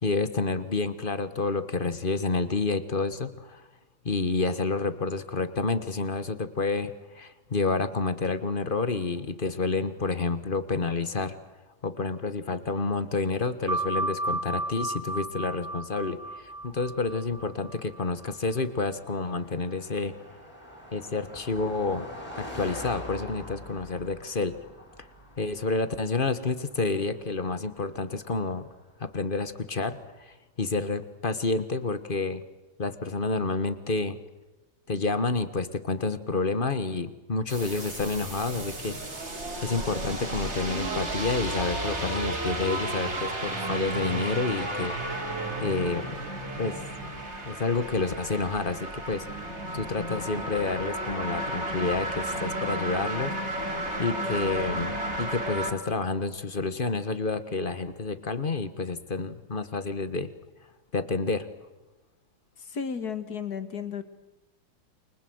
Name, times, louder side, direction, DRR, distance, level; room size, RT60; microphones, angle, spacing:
voice 1, 0.0-3.6 4.0-11.4 11.8-20.1 20.9-22.1 22.4-24.5 25.4-28.7 29.0-32.4 32.8-34.2 34.9-39.0 39.6-44.9 45.6-46.3 46.6-47.1 47.4-49.3 49.7-53.3 54.0-60.3 60.9-61.5, left 3 dB, 30° left, 12 dB, 1.3 m, -29 dB
sound 1, 13.7-18.9, right 2 dB, 75° right, 2.9 m, -33 dB
Car passing by, 16.2-29.7, left 1 dB, 5° left, 7.3 m, -46 dB
sound 2, 37.5-55.7, right 1 dB, 30° right, 3.5 m, -33 dB
voice 2, 62.6-64.0, left 6 dB, 50° left, 11 dB, 2.1 m, -33 dB
29.0 x 25.5 x 8.0 m, 1.0 s
omnidirectional pair, 2.2 m